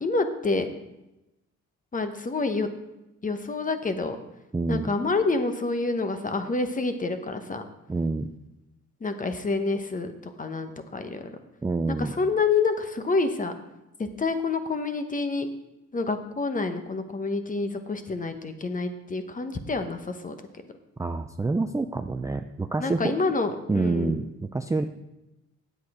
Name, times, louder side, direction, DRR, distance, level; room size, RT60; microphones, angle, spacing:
voice 1, 0.0-0.7 1.9-2.7 3.2-4.2 4.7-7.6 9.0-11.3 11.9-13.5 14.0-15.5 15.9-20.3 22.8-24.2, left 3 dB, 25° left, 8 dB, 1.0 m, -28 dB
voice 2, 4.5-4.9 7.9-8.3 11.6-12.1 21.0-23.2 23.7-24.8, right 3 dB, 10° right, 7 dB, 0.4 m, -27 dB
8.4 x 8.1 x 4.9 m, 0.95 s
cardioid pair, 90°, 30 cm